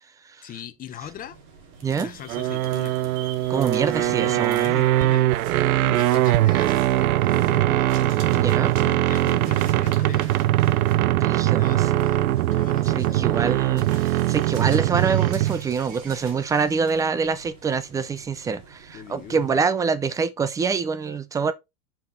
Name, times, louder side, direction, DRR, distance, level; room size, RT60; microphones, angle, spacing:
voice 1, 0.4-1.4 2.0-3.0 3.9-5.2 5.8-7.9 8.8-10.4 11.5-13.6 18.9-19.5, left 10 dB, 20° left, 0.8 m, -39 dB
sound 1, 1.0-19.6, right 5 dB, 65° right, 4.0 m, -50 dB
sound 2, 1.7-7.6 7.9-17.1, right 6 dB, 45° right, 2.6 m, -43 dB
voice 2, 1.8-2.1 3.5-4.7 8.3-8.8 11.1-12.0 12.9-21.5, right 5 dB, 10° right, 0.4 m, -26 dB
sound 3, 2.3-15.7, right 15 dB, 85° right, 0.6 m, -21 dB
6.9 x 5.8 x 3.7 m
supercardioid pair, 125°, 42 cm